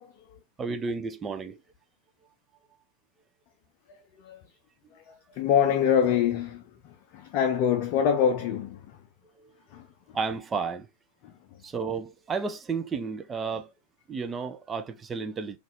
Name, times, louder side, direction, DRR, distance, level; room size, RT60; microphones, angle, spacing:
voice 1, 0.0-0.4 4.2-4.4 4.9-9.0 9.7-10.2 11.2-11.6, left 8 dB, 45° left, 0.5 m, -26 dB
voice 2, 0.6-1.6 9.4-9.5 10.1-10.9 11.6-13.7 14.1-15.6, right 5 dB, 20° right, 0.5 m, -32 dB
3.9 x 2.4 x 2.9 m
figure-of-eight pair, 90°, 0 cm